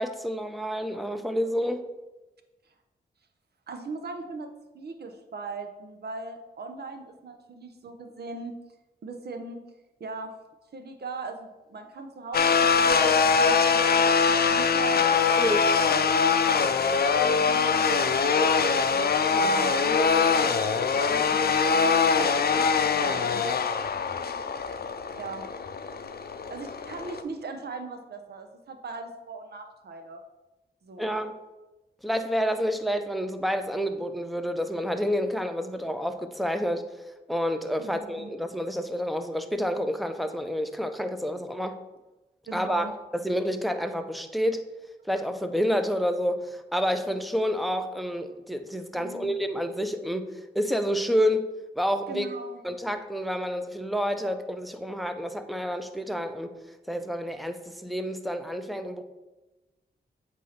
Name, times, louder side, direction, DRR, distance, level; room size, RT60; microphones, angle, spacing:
voice 1, 0.0-1.8 15.4-15.6 31.0-31.4 32.0-36.8 37.3-41.8 42.5-44.6 45.0-51.5 51.8-52.3 52.6-56.6 56.9-59.0, equal, ahead, 8 dB, 0.6 m, -29 dB
voice 2, 3.7-4.5 4.7-8.6 9.0-9.6 10.0-10.3 10.7-15.6 17.1-22.7 23.0-23.4 25.1-25.5 26.5-30.2 30.8-31.1 37.8-38.3 42.5-42.9 49.0-49.3 52.1-52.6, right 3 dB, 65° right, 6 dB, 0.9 m, -39 dB
sound 1, 12.3-27.2, left 5 dB, 60° left, 0.6 m, -23 dB
8.2 x 2.8 x 5.8 m, 1.1 s
cardioid pair, 60°, 18 cm